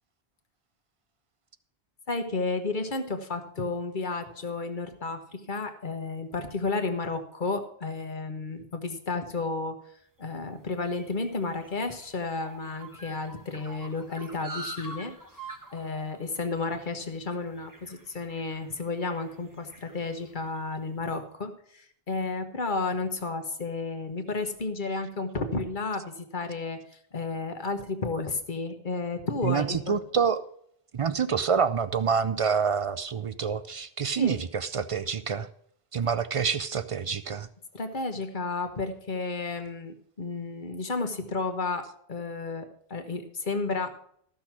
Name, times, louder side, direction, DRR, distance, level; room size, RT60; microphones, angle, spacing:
voice 1, 2.1-9.8 10.2-15.1 15.7-30.0 34.2-34.3 37.7-44.0, left 3 dB, 50° left, 7 dB, 1.3 m, -32 dB
sound 1, 10.3-20.8, right 2 dB, 20° right, 0.9 m, -46 dB
voice 2, 29.4-30.4 30.9-35.5 35.9-37.5, right 6 dB, 55° right, 14 dB, 0.4 m, -27 dB
13.5 x 6.3 x 6.0 m, 0.65 s
omnidirectional pair, 1.1 m